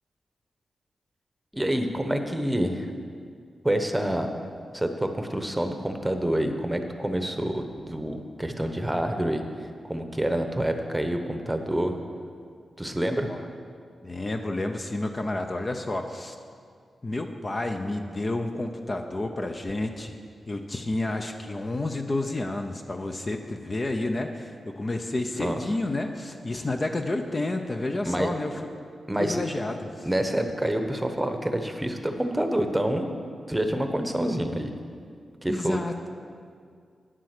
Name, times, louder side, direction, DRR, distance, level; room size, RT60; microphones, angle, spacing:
voice 1, 1.5-2.9 3.6-4.3 4.7-9.4 9.8-11.9 12.8-13.3 25.4-25.6 28.0-28.3 29.1-29.4 30.0-33.1 33.5-34.7 35.4-35.8, right 1 dB, 10° right, 6 dB, 1.0 m, -27 dB
voice 2, 14.0-16.4 17.0-20.2 20.5-28.7 29.2-29.9 35.5-35.9, left 2 dB, 35° left, 5 dB, 0.7 m, -30 dB
9.5 x 7.5 x 6.7 m, 2.2 s
cardioid pair, 75°, 0 cm